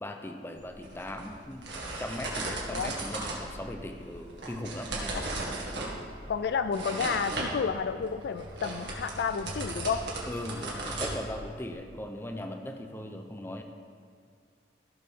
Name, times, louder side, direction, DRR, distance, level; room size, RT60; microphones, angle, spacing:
voice 1, 0.0-1.7 2.0-5.4 10.2-13.6, left 1 dB, 10° left, 5 dB, 0.6 m, -39 dB
sound 1, 0.6-11.7, right 2 dB, 65° right, 1.9 m, -37 dB
voice 2, 6.3-10.1, left 6 dB, 60° left, 10 dB, 0.3 m, -31 dB
15.5 x 6.4 x 3.7 m, 2.3 s
head